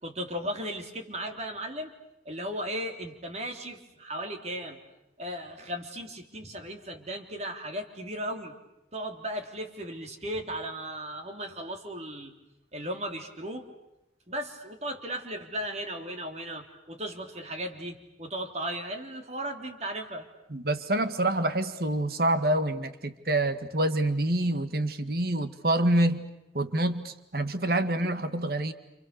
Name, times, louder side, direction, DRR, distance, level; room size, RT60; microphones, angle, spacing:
voice 1, 0.0-1.9 2.2-4.8 5.2-8.5 8.9-12.3 12.7-13.6 14.3-20.3, right 1 dB, 40° right, 4 dB, 3.4 m, -36 dB
voice 2, 20.5-26.3 26.5-28.7, right 1 dB, 60° right, 10 dB, 1.9 m, -27 dB
29.5 x 29.0 x 6.8 m, 0.90 s
head